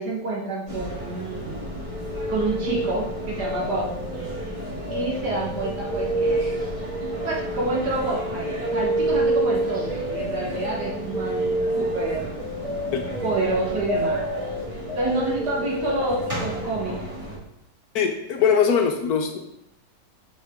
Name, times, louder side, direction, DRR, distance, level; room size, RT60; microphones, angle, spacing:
voice 1, 0.0-1.7 2.3-3.9 4.9-6.6 7.2-12.4 13.2-14.2 15.0-17.1, right 2 dB, 70° right, -3 dB, 1.8 m, -28 dB
sound 1, 0.7-17.4, right 1 dB, 20° right, 1.8 m, -34 dB
sound 2, 1.9-7.9 8.1-16.8, right 1 dB, 5° left, 0.9 m, -29 dB
voice 2, 17.9-19.4, left 7 dB, 65° left, 4 dB, 1.2 m, -21 dB
6.4 x 6.3 x 3.6 m, 0.81 s
omnidirectional pair, 1.9 m